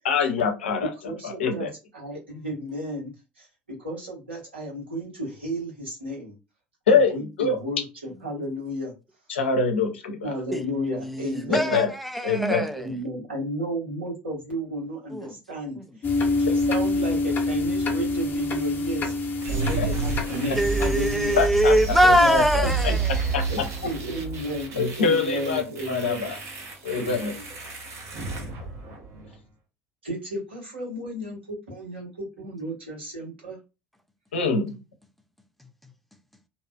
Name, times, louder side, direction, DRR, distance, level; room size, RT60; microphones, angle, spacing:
voice 1, 0.0-0.9 1.2-1.7 6.9-7.6 9.3-10.3 11.5-11.9 12.2-12.7 19.8-19.9 21.4-22.9 23.3-23.4 24.8-26.4 26.8-27.3 34.3-34.8, left 5 dB, 75° left, 0.6 m, -24 dB
voice 2, 0.8-1.7 1.9-6.4 6.9-8.9 10.2-11.8 12.7-21.4 22.2-22.9 23.5-26.3 26.9-27.4 28.3-28.5 30.0-33.6, equal, 85° right, 1.3 m, -33 dB
voice 3, 10.5-12.9 15.1-15.3 15.8-15.9 20.6-23.3 35.6-35.9, equal, ahead, 0.4 m, -23 dB
sound 1, 16.0-21.2, left 3 dB, 35° left, 0.8 m, -26 dB
sound 2, 19.4-29.4, right 4 dB, 50° right, 1.0 m, -30 dB
2.7 x 2.3 x 2.2 m
figure-of-eight pair, 65°, 6 cm